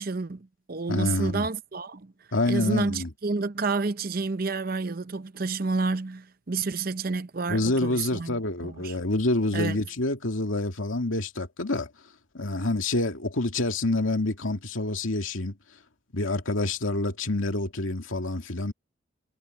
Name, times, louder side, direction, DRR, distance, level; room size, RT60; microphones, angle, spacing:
voice 1, 0.0-2.1 2.5-8.9 9.5-9.8, right 4 dB, 45° right, 0.7 m, -30 dB
voice 2, 0.9-1.5 2.3-3.1 7.5-11.9 12.3-15.6 16.1-18.7, left 2 dB, 85° left, 2.4 m, -27 dB
head